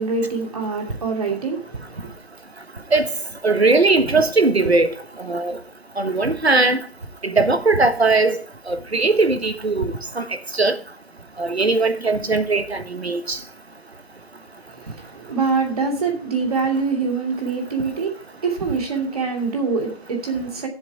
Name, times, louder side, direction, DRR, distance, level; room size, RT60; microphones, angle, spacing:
voice 1, 0.0-2.1 14.7-20.7, right 4 dB, 35° right, 2.7 m, -25 dB
voice 2, 3.4-4.9 5.2-5.6 6.0-6.8 7.2-10.8 11.4-13.4, right 3 dB, 85° right, 1.5 m, -19 dB
12.0 x 7.5 x 4.6 m
figure-of-eight pair, 155°, 31 cm